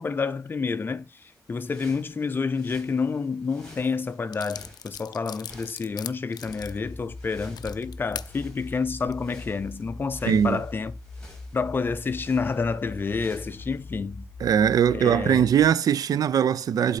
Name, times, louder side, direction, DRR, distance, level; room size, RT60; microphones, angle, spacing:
voice 1, 0.0-10.9 11.5-14.3 14.9-15.5, left 4 dB, 30° left, 0.5 m, -29 dB
sound 1, 1.2-14.0, left 1 dB, 10° left, 2.8 m, -53 dB
sound 2, 4.3-8.3 8.9-9.1, left 9 dB, 90° left, 0.4 m, -40 dB
sound 3, 6.4-15.7, left 3 dB, 55° left, 0.8 m, -41 dB
voice 2, 10.3-10.6 14.4-17.0, right 8 dB, 65° right, 0.4 m, -21 dB
7.9 x 4.1 x 4.1 m
wide cardioid pair, 165°, 7 cm